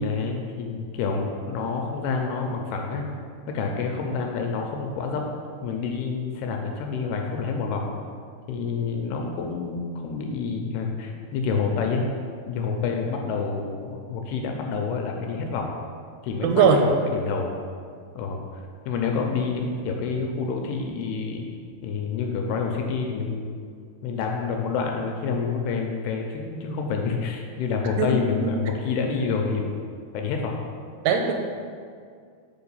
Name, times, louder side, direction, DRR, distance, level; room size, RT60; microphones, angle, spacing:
voice 1, 0.0-3.1 3.5-5.3 5.6-7.9 8.5-12.1 12.5-15.8 16.2-17.6 18.2-18.4 18.9-21.5 21.8-23.6 24.0-29.8 30.1-30.5, left 5 dB, 80° left, 2 dB, 2.4 m, -28 dB
voice 2, 16.4-16.8 28.0-28.5 31.0-31.3, right 5 dB, 85° right, 3 dB, 2.5 m, -20 dB
5.9 x 4.5 x 5.4 m, 2.2 s
omnidirectional pair, 4.9 m